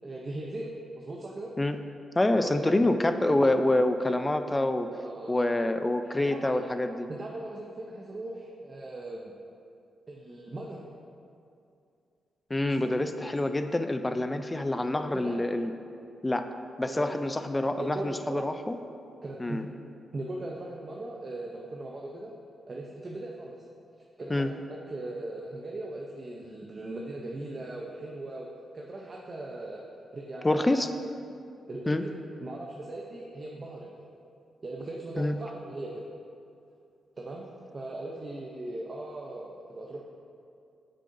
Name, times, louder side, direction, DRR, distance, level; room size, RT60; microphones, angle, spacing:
voice 1, 0.0-1.5 2.3-2.7 5.0-5.4 6.0-6.6 7.1-9.3 10.1-10.8 12.7-13.0 14.9-15.4 16.8-17.2 17.8-18.5 19.2-19.6 20.1-22.3 22.7-23.6 24.2-28.5 28.7-29.8 30.1-30.9 31.7-33.9 34.6-36.0 37.2-37.5 37.7-40.0, right 2 dB, 35° right, -2 dB, 0.5 m, -39 dB
voice 2, 2.2-4.9 5.3-6.9 12.5-15.7 16.2-16.5 16.8-18.8 19.4-19.7 24.3-24.5 30.4-30.9 31.9-32.1 35.2-35.4, left 1 dB, 15° left, 8 dB, 0.3 m, -26 dB
7.6 x 6.4 x 2.6 m, 2.5 s
cardioid pair, 105°, 0 cm